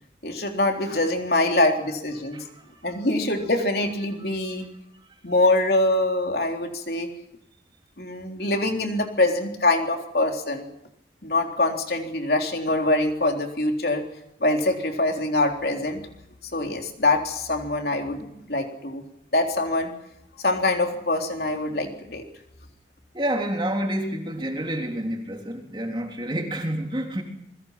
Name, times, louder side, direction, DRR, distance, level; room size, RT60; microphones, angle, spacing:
voice 1, 0.2-2.4 2.8-4.7 5.2-7.1 8.0-10.7 11.2-14.0 14.4-16.0 16.5-19.0 19.3-19.9 20.4-22.2, left 2 dB, 60° left, 3 dB, 3.8 m, -24 dB
voice 2, 2.2-2.9 4.4-4.5 23.1-27.2, right 1 dB, 25° right, 2 dB, 3.5 m, -29 dB
27.5 x 22.0 x 5.9 m, 0.81 s
head